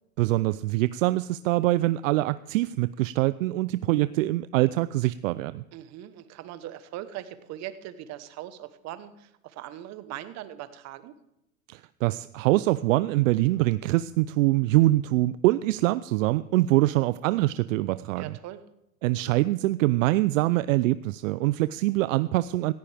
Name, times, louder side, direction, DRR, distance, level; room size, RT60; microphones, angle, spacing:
voice 1, 0.2-5.6 11.7-18.3 19.0-22.7, right 17 dB, 65° right, 16 dB, 0.5 m, -24 dB
voice 2, 5.7-11.2 18.2-18.6, right 12 dB, 40° right, 12 dB, 1.2 m, -40 dB
17.0 x 15.5 x 3.5 m, 0.86 s
hypercardioid pair, 125°, 43 cm